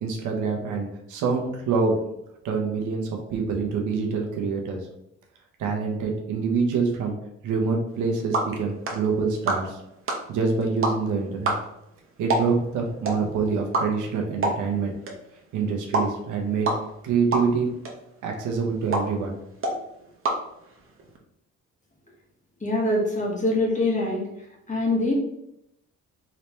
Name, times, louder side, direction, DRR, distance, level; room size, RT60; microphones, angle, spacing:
voice 1, 0.0-2.0 2.4-4.9 5.6-7.1 7.4-9.8 10.3-11.5 12.2-14.9 15.5-16.7 17.0-17.7 18.2-19.4 19.7-19.9, right 5 dB, 85° right, 1 dB, 1.0 m, -26 dB
sound 1, 7.9-21.2, right 2 dB, 45° right, 1.0 m, -31 dB
voice 2, 22.6-24.2 24.7-25.1, left 2 dB, 25° left, -2 dB, 1.4 m, -24 dB
4.0 x 3.3 x 3.0 m, 0.79 s
cardioid pair, 90°, 30 cm